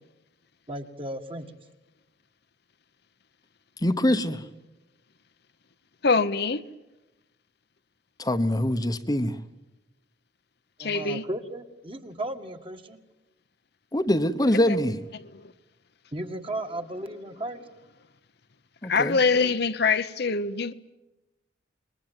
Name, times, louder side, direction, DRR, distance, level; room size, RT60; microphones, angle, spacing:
voice 1, 0.7-1.6 10.8-13.0 16.1-17.6, right 1 dB, 30° right, 2.0 m, -35 dB
voice 2, 3.8-4.4 8.2-9.4 13.9-15.0 18.8-19.2, left 1 dB, 20° left, 1.1 m, -24 dB
voice 3, 6.0-6.6 10.8-11.2 14.7-14.8 15.1-15.5 18.8-20.7, left 4 dB, 60° left, 0.9 m, -24 dB
26.5 x 22.5 x 9.2 m
head